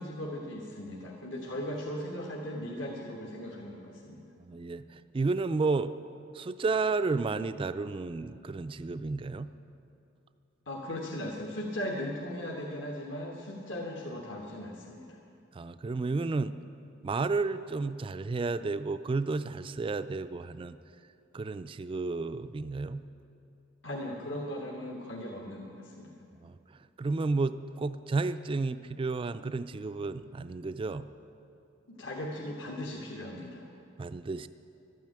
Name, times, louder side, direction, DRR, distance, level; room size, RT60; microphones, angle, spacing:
voice 1, 0.0-4.2 10.7-15.1 23.8-26.1 31.9-33.6, left 1 dB, 70° left, -2 dB, 1.4 m, -38 dB
voice 2, 4.4-5.9 6.3-9.5 15.6-16.5 17.0-20.8 21.3-23.0 26.4-26.5 27.0-31.1 34.0-34.5, right 3 dB, 25° right, 11 dB, 0.3 m, -32 dB
12.5 x 9.3 x 8.9 m, 2.7 s
head